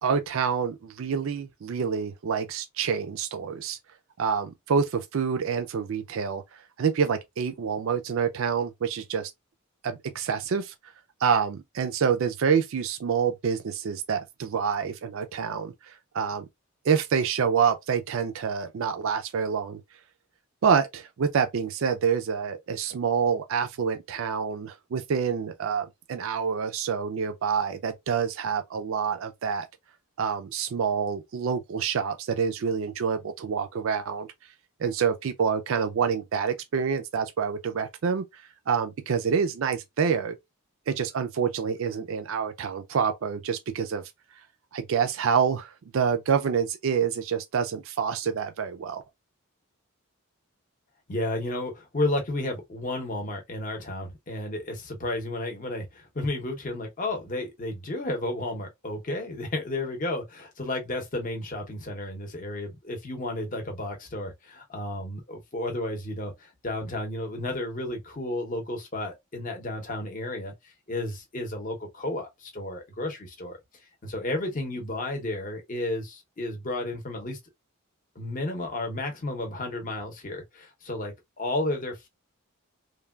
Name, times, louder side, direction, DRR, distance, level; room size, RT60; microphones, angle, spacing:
voice 1, 0.0-3.8 4.2-6.4 6.8-9.3 9.8-10.7 11.2-16.5 16.8-19.8 20.6-29.7 30.2-34.3 34.8-40.4 40.9-44.0 44.7-49.0, right 6 dB, 60° right, 0.4 m, -27 dB
voice 2, 51.1-70.5 70.9-73.6 74.0-77.4 78.2-82.1, left 2 dB, 35° left, 0.7 m, -32 dB
3.2 x 2.2 x 2.2 m
head